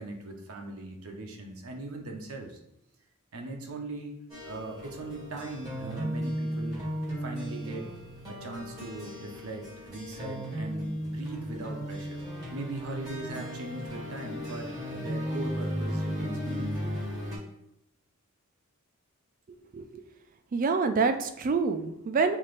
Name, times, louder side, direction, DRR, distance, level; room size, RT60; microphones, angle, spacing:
voice 1, 0.0-2.6 3.3-4.2 4.4-6.8 7.2-7.9 8.2-12.2 12.5-16.9, right 2 dB, 70° right, 1 dB, 0.7 m, -40 dB
sound 1, 4.3-17.4, equal, 15° right, 1.7 m, -35 dB
voice 2, 19.5-20.0 20.5-22.4, right 4 dB, 40° right, 8 dB, 0.3 m, -27 dB
5.8 x 2.5 x 3.2 m, 0.80 s
head